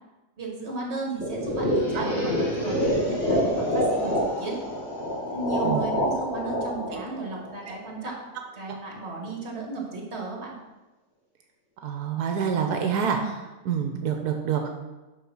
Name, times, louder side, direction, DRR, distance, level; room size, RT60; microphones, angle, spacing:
voice 1, 0.4-4.6 5.3-8.3 8.5-10.6, right 3 dB, 45° right, -1 dB, 2.1 m, -35 dB
sound 1, 1.2-8.1, equal, 45° left, 2.4 m, -26 dB
voice 2, 11.8-14.7, right 7 dB, 90° right, 4 dB, 1.3 m, -27 dB
6.9 x 5.4 x 6.1 m, 1.1 s
omnidirectional pair, 1.6 m